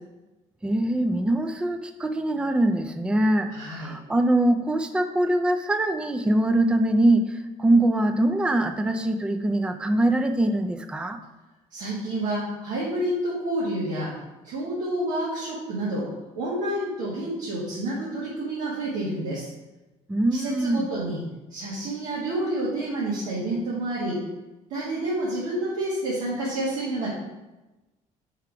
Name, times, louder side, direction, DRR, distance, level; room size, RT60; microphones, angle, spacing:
voice 1, 0.6-11.2 20.1-20.9, right 1 dB, 5° right, 8 dB, 0.3 m, -23 dB
voice 2, 3.5-3.9 11.7-14.1 14.4-16.1 16.4-19.5 20.3-21.2 21.5-24.2 24.7-27.1, right 1 dB, 75° right, -8 dB, 1.7 m, -29 dB
4.8 x 4.8 x 4.7 m, 1.1 s
cardioid pair, 145°, 13 cm